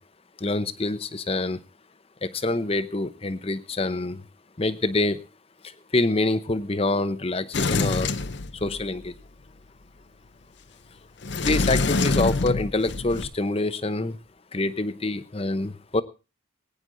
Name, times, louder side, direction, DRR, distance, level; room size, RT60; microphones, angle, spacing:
voice 1, 0.4-1.6 2.4-4.2 4.6-5.2 5.9-8.1 8.6-9.1 11.4-14.2 14.5-16.0, left 2 dB, 30° left, 13 dB, 0.8 m, -26 dB
Sliding door, 7.5-9.1 11.2-13.2, left 3 dB, 60° left, 0.7 m, -25 dB
20.0 x 9.8 x 3.9 m, 0.31 s
head